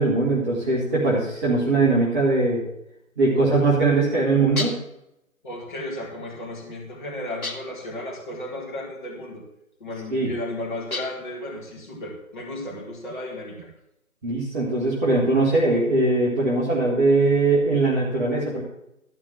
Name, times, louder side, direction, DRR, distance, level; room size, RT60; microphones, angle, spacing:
voice 1, 0.0-2.6 3.2-4.7 10.1-10.3 14.2-18.6, right 3 dB, 10° right, -10 dB, 1.8 m, -21 dB
sound 1, 4.6-5.0 7.4-7.9 10.9-11.4, left 3 dB, 90° left, 1.9 m, -32 dB
voice 2, 5.4-9.4 9.8-13.7, left 1 dB, 35° left, -4 dB, 4.2 m, -34 dB
13.5 x 5.9 x 7.5 m, 0.82 s
figure-of-eight pair, 160°, 42 cm